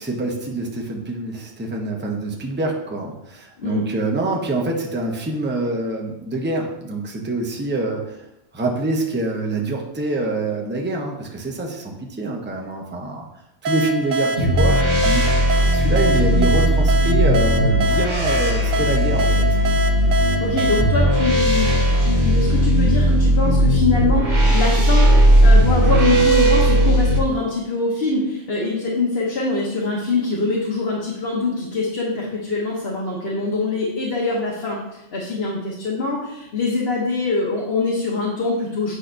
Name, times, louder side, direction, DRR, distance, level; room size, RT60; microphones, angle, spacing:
voice 1, 0.0-8.2 8.5-13.2 13.6-15.3 15.7-19.5, right 2 dB, 10° right, 0 dB, 0.7 m, -25 dB
sound 1, 13.6-22.1, right 2 dB, 60° right, 0.6 m, -25 dB
sound 2, 14.4-27.2, equal, 40° right, 1.2 m, -17 dB
voice 2, 20.2-25.1 25.4-38.9, left 3 dB, 55° left, -5 dB, 1.3 m, -24 dB
8.4 x 5.7 x 2.6 m, 0.87 s
omnidirectional pair, 1.3 m